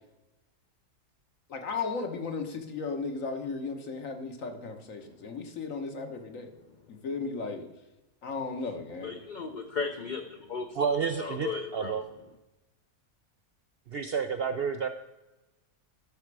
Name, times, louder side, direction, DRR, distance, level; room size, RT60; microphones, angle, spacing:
voice 1, 1.5-6.5 6.9-7.7 8.2-9.1, left 4 dB, 65° left, 5 dB, 1.6 m, -35 dB
voice 2, 9.0-10.8 11.2-11.9, left 5 dB, 45° left, 4 dB, 0.6 m, -35 dB
voice 3, 10.7-12.0 13.9-14.9, right 6 dB, 60° right, 7 dB, 0.6 m, -30 dB
12.0 x 6.4 x 4.7 m, 1.0 s
omnidirectional pair, 1.5 m